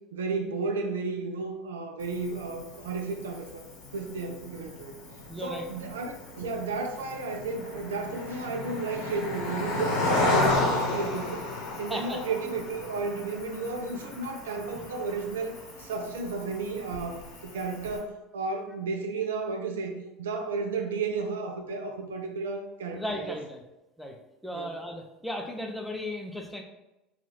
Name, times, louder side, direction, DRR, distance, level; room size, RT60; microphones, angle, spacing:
voice 1, 0.1-3.7 3.9-5.0 5.4-11.4 11.8-23.4 24.5-24.7, right 4 dB, 75° right, 4 dB, 0.3 m, -33 dB
Cricket, 2.0-18.0, left 2 dB, 70° left, 0.8 m, -33 dB
voice 2, 5.3-5.7 11.9-12.2 14.7-14.9 22.9-23.6 24.0-24.1 24.4-26.6, left 1 dB, ahead, 2 dB, 0.5 m, -36 dB
2.9 x 2.3 x 3.1 m, 0.95 s
hypercardioid pair, 70°, 0 cm